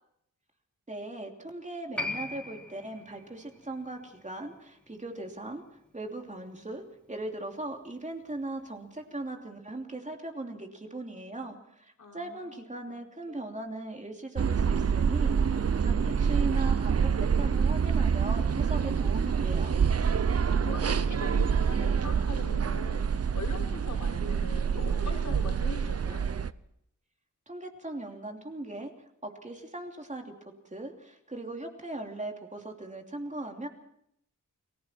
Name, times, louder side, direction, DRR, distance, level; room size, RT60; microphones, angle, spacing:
voice 1, 0.9-5.6 5.9-19.7 27.5-28.9 29.2-30.3 30.7-33.7, right 2 dB, 25° right, 3 dB, 3.0 m, -39 dB
Piano, 2.0-8.9 9.2-9.3, left 2 dB, 5° left, 4.0 m, -43 dB
voice 2, 12.0-13.0 13.3-13.4 20.3-26.2, left 3 dB, 75° left, -1 dB, 6.2 m, -42 dB
sound 1, 14.3-26.5, right 6 dB, 50° right, 0.7 m, -26 dB
29.5 x 20.5 x 4.5 m, 0.73 s
wide cardioid pair, 110°, 30 cm